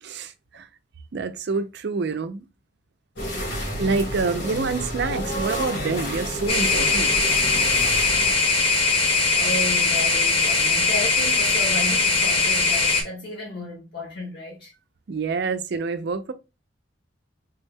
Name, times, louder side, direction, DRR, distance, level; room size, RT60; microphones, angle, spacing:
voice 1, 0.0-0.7 1.1-2.4 3.8-7.1 15.1-16.3, right 4 dB, 60° right, 0.4 m, -27 dB
sound 1, 3.2-8.3, equal, 80° left, 1.9 m, -30 dB
sound 2, 6.5-13.0, left 4 dB, 30° left, 0.7 m, -20 dB
voice 2, 9.3-14.7, left 1 dB, 55° left, 0.9 m, -33 dB
3.4 x 2.1 x 3.4 m
head